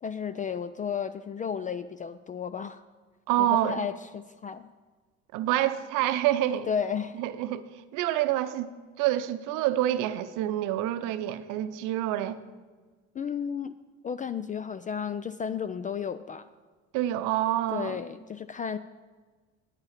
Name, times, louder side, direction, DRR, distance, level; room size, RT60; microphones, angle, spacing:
voice 1, 0.0-2.8 3.4-4.7 6.7-7.2 13.1-13.8 14.0-16.5 17.7-18.8, left 7 dB, 25° left, 12 dB, 0.4 m, -33 dB
voice 2, 3.3-3.8 5.3-6.7 7.2-7.6 7.9-8.7 9.0-12.4 16.9-18.0, right 13 dB, 65° right, 12 dB, 0.7 m, -27 dB
9.0 x 8.8 x 5.8 m, 1.4 s
hypercardioid pair, 70°, 34 cm